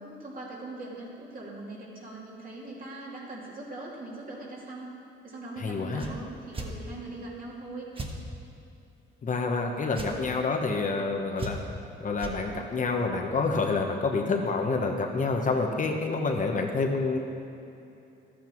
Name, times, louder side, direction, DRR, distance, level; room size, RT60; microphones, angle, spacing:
voice 1, 0.0-4.9 5.2-7.9, right 2 dB, 45° right, -4 dB, 2.7 m, -41 dB
voice 2, 5.6-6.1 9.2-11.6 12.0-17.2, left 3 dB, 40° left, 2 dB, 1.1 m, -28 dB
sound 1, 6.0-6.1 6.5-6.7 7.9-8.1 9.9-10.1 11.4-11.8 12.2-12.4, right 3 dB, 25° right, 1.3 m, -36 dB
12.5 x 8.5 x 4.5 m, 2.8 s
cardioid pair, 90°, 20 cm